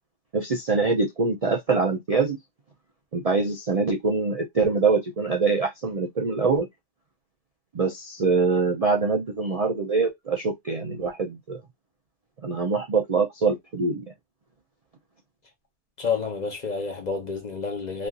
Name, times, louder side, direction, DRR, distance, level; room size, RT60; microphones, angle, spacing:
voice 1, 0.3-2.4 3.1-6.7 7.7-11.6 12.4-14.0, right 4 dB, 45° right, 0.5 m, -24 dB
voice 2, 16.0-18.1, left 5 dB, 40° left, 0.8 m, -29 dB
3.1 x 2.5 x 2.3 m
omnidirectional pair, 1.3 m